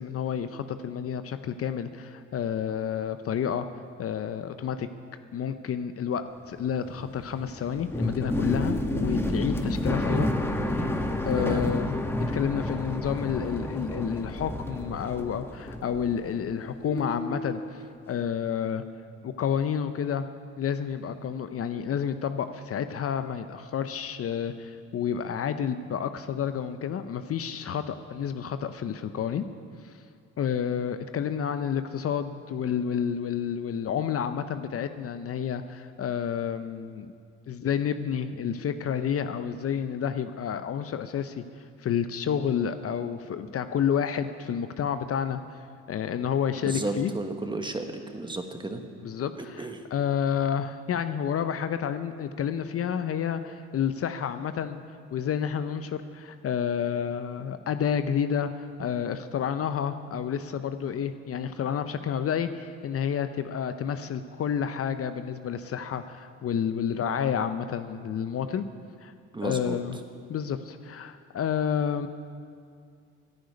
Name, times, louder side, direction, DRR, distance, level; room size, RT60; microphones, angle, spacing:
voice 1, 0.0-3.7 4.0-4.9 5.3-10.3 10.8-11.0 11.2-12.0 12.3-18.8 19.2-20.3 20.6-29.4 29.8-29.9 30.4-37.1 37.5-41.4 41.8-45.6 45.9-47.1 49.0-54.8 55.1-68.6 69.0-69.1 69.4-70.0 70.3-72.1, left 8 dB, 45° left, 10 dB, 0.7 m, -30 dB
sound 1, 6.5-16.6 16.9-17.7, left 1 dB, 10° left, 1.3 m, -30 dB
voice 2, 11.4-11.7 46.6-48.8 49.4-49.8 69.3-69.8, right 2 dB, 15° right, 5 dB, 1.5 m, -33 dB
10.5 x 10.0 x 9.6 m, 2.2 s
supercardioid pair, 75°, 31 cm